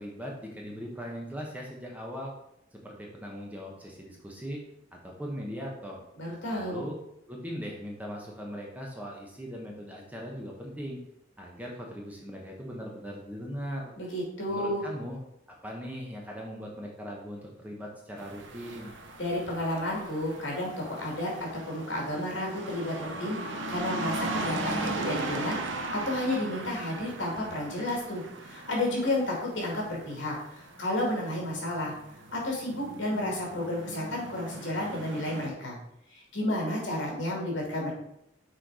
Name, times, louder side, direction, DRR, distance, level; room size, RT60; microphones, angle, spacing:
voice 1, 0.0-2.3 2.7-4.6 4.9-6.0 6.5-7.0 7.3-11.0 11.4-13.9 14.5-15.2 15.6-18.9, equal, 10° right, -1 dB, 1.1 m, -39 dB
voice 2, 6.2-6.8 14.0-14.8 19.2-31.9 32.3-35.8 36.1-37.9, left 1 dB, 70° left, -1 dB, 2.6 m, -32 dB
sound 1, 18.2-35.5, right 2 dB, 75° right, 0.9 m, -38 dB
6.4 x 4.5 x 4.9 m, 0.77 s
head